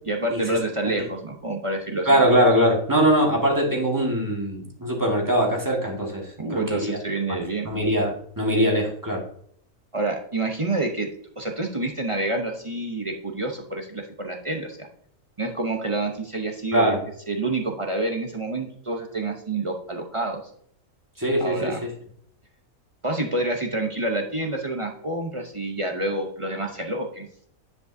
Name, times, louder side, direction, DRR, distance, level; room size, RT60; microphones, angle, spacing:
voice 1, 0.1-2.2 6.4-7.7 9.9-11.1 11.4-14.9 15.4-17.0 17.3-20.4 21.4-21.8 23.0-27.3, right 2 dB, 30° right, 2 dB, 0.6 m, -28 dB
voice 2, 2.0-7.0 7.3-7.4 7.6-9.2 16.7-17.0 21.2-21.7, equal, 15° right, -1 dB, 1.5 m, -22 dB
9.8 x 5.2 x 2.7 m, 0.64 s
omnidirectional pair, 1.5 m